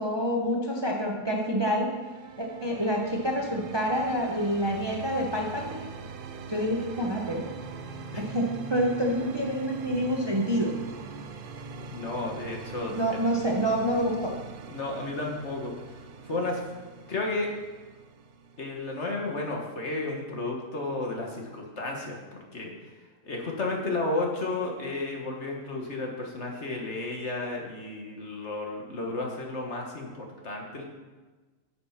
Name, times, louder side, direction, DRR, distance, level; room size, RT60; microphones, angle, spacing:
voice 1, 0.0-1.9 2.4-6.0 6.5-7.5 8.2-10.8 12.9-14.3, equal, 20° right, -1 dB, 1.0 m, -27 dB
sound 1, 1.5-19.3, right 5 dB, 55° right, 0.6 m, -43 dB
voice 2, 11.9-13.2 14.7-15.7 16.3-16.6 17.1-17.5 18.6-22.7 23.2-30.8, left 2 dB, 50° left, 0 dB, 1.7 m, -32 dB
9.5 x 6.7 x 5.9 m, 1.3 s
omnidirectional pair, 1.6 m